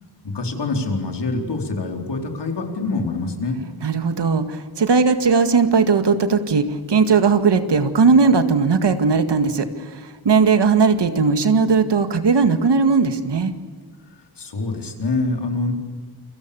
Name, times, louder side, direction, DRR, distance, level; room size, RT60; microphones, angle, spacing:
voice 1, 0.2-3.6 14.1-15.7, left 3 dB, 85° left, 3 dB, 4.5 m, -25 dB
voice 2, 3.8-13.5, right 5 dB, 90° right, 9 dB, 2.1 m, -18 dB
29.5 x 24.0 x 7.1 m, 1.5 s
wide cardioid pair, 115°, 41 cm